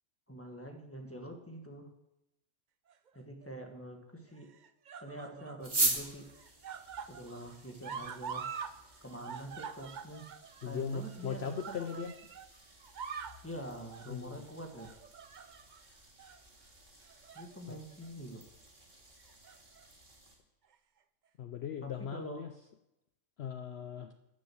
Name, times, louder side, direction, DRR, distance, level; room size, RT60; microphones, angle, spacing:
voice 1, 0.3-1.9 3.1-4.5 5.0-6.3 7.1-8.5 9.0-10.2 10.6-12.1 13.4-14.9 17.3-18.4 21.8-22.4, right 1 dB, 10° left, 2 dB, 1.4 m, -45 dB
sound 1, 2.9-3.5 4.4-5.7 6.0-8.8 9.0-12.5 12.8-13.4 13.9-14.2 14.8-15.8 16.2-16.4 17.0-17.6 17.9-18.1 19.2-19.9 20.7-20.8, right 6 dB, 70° right, 0.4 m, -45 dB
sound 2, 5.6-20.3, right 2 dB, 35° right, 2.2 m, -42 dB
voice 2, 10.6-12.1 14.1-14.4 17.7-17.8 21.4-22.5 23.4-24.1, left 7 dB, 60° left, 7 dB, 0.7 m, -38 dB
12.5 x 6.3 x 7.8 m, 0.90 s
omnidirectional pair, 1.5 m